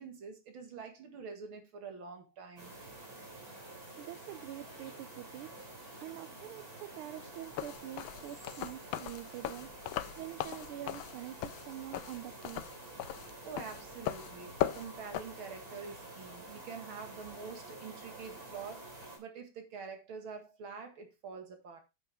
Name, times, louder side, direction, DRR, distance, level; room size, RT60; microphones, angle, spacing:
voice 1, 0.0-2.8 13.5-18.9 19.2-21.8, right 5 dB, 70° right, 2.6 m, -46 dB
sound 1, 2.6-19.2, right 2 dB, 45° right, 4.0 m, -49 dB
voice 2, 4.0-5.5 6.0-9.8 10.2-12.8, right 13 dB, 85° right, 1.5 m, -46 dB
sound 2, 7.4-15.2, left 12 dB, 75° left, 1.4 m, -38 dB
9.3 x 7.3 x 3.4 m
omnidirectional pair, 2.3 m